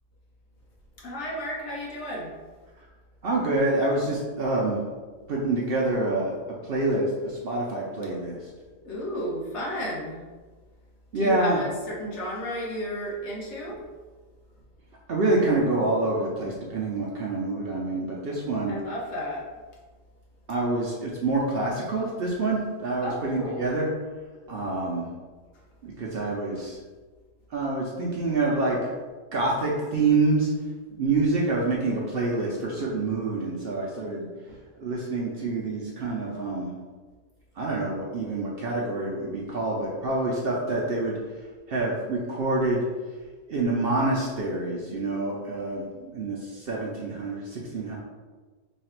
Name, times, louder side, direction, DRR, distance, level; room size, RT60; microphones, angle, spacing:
voice 1, 1.0-2.3 8.8-10.2 11.1-13.8 18.7-19.5 23.0-23.7 26.6-26.7 34.5-34.6, equal, 60° left, -4 dB, 1.2 m, -33 dB
voice 2, 3.2-4.8 5.3-6.3 6.6-8.5 11.1-11.6 15.1-18.8 20.5-23.9 24.5-25.1 25.8-26.8 27.5-28.9 29.3-30.5 31.0-34.3 34.8-36.7 37.6-41.2 41.7-42.8 43.5-48.0, right 2 dB, 60° right, -3 dB, 0.7 m, -27 dB
3.2 x 2.4 x 4.2 m, 1.4 s
omnidirectional pair, 1.4 m